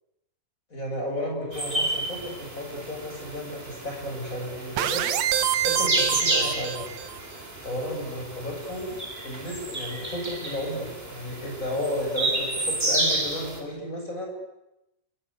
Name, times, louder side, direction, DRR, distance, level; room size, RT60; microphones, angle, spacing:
voice 1, 0.7-5.0 5.6-6.9 7.6-9.0 9.2-14.3, left 1 dB, 20° left, 1 dB, 7.8 m, -33 dB
sound 1, 1.5-13.6, right 2 dB, 15° right, 4.0 m, -31 dB
sound 2, 4.8-7.2, right 11 dB, 65° right, 1.9 m, -26 dB
30.0 x 21.5 x 8.5 m, 0.90 s
omnidirectional pair, 4.3 m